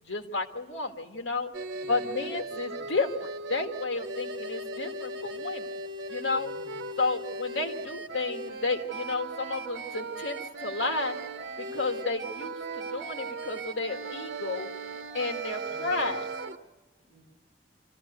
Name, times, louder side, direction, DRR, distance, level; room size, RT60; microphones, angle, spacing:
voice 1, 0.0-1.5 1.9-5.7 6.1-6.5 7.0-11.2 11.7-14.7 15.1-16.2, left 3 dB, 90° left, 5 dB, 1.8 m, -32 dB
sound 1, 1.5-16.6, right 2 dB, 85° right, 1.2 m, -37 dB
voice 2, 1.7-3.0 6.3-6.9 15.7-16.2 17.0-17.2, equal, 15° right, -6 dB, 7.3 m, -55 dB
26.0 x 15.0 x 8.0 m, 1.3 s
head